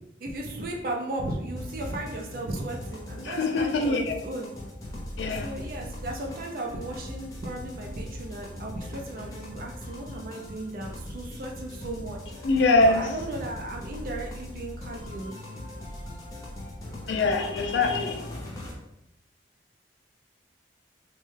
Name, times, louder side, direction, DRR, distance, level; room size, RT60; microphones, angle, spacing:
voice 1, 0.2-4.5 5.3-12.2 12.8-15.4, right 1 dB, 50° right, 0 dB, 0.4 m, -35 dB
sound 1, 1.5-18.7, left 1 dB, 20° left, 0.6 m, -40 dB
voice 2, 3.2-4.1 5.2-5.5 12.4-13.0 17.1-18.4, left 3 dB, 80° left, 3 dB, 0.4 m, -23 dB
3.1 x 2.2 x 3.1 m, 0.85 s
head